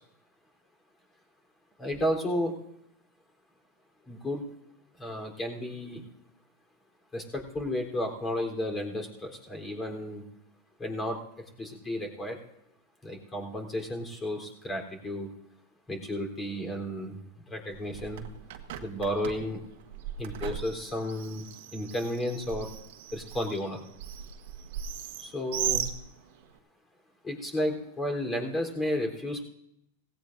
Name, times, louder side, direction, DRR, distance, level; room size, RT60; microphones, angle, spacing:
voice 1, 1.8-2.5 4.1-4.4 5.0-6.0 7.1-10.2 10.8-11.2 11.6-12.4 13.0-15.3 15.9-17.2 17.5-18.3 18.8-19.6 20.2-21.4 21.7-22.7 23.1-23.8 25.2-25.9 27.2-29.4, left 1 dB, 20° left, 2 dB, 3.6 m, -32 dB
Bird, 17.7-26.6, right 10 dB, 65° right, 1.4 m, -38 dB
18.0 x 16.5 x 2.6 m, 0.80 s
hypercardioid pair, 110°, 0 cm